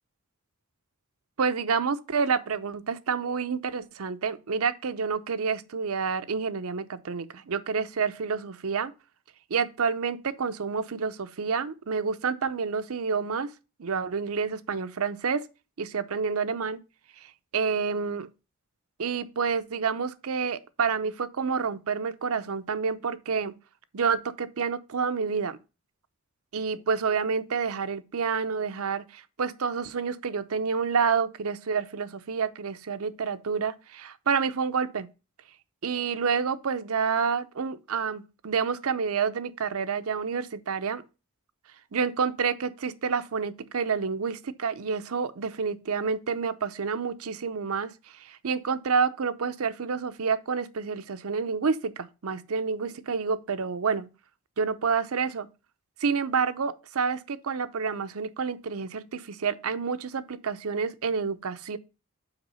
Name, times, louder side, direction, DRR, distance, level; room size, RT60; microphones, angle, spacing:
voice 1, 1.4-8.9 9.5-13.5 13.8-15.4 15.8-16.8 17.2-18.3 19.0-23.6 23.9-25.6 26.5-35.1 35.8-41.0 41.9-47.9 48.2-54.1 54.6-55.5 56.0-61.8, right 5 dB, 75° right, 0.6 m, -29 dB
5.9 x 4.8 x 5.4 m
head